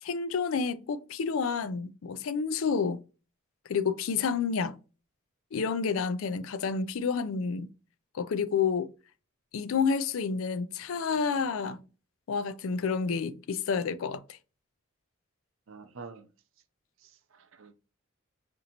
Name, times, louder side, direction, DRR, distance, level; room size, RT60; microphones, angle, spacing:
voice 1, 0.0-3.0 3.7-4.8 5.5-7.7 8.1-8.9 9.5-11.8 12.3-14.4, left 5 dB, 85° left, 0.4 m, -29 dB
voice 2, 15.7-16.3 17.0-17.7, right 4 dB, 75° right, 0.5 m, -47 dB
5.1 x 2.6 x 2.8 m
head